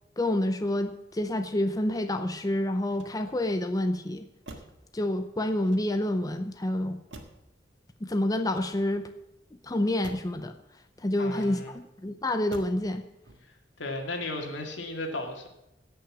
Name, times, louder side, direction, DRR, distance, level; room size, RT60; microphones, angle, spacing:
voice 1, 0.2-4.3 4.9-7.0 8.0-9.1 9.6-10.5 11.0-13.0, left 1 dB, 20° left, 7 dB, 0.6 m, -28 dB
Motor vehicle (road), 2.8-3.6 4.4-4.9 5.6-6.2 7.1-7.6 8.3-9.1 10.0-10.4 11.3-11.9 12.5-12.9 13.2-13.7, right 2 dB, 80° right, 1.7 m, -48 dB
voice 2, 11.2-11.7 13.4-13.5 13.8-15.5, left 2 dB, 85° left, 3 dB, 2.3 m, -35 dB
16.5 x 5.8 x 7.3 m, 0.86 s
head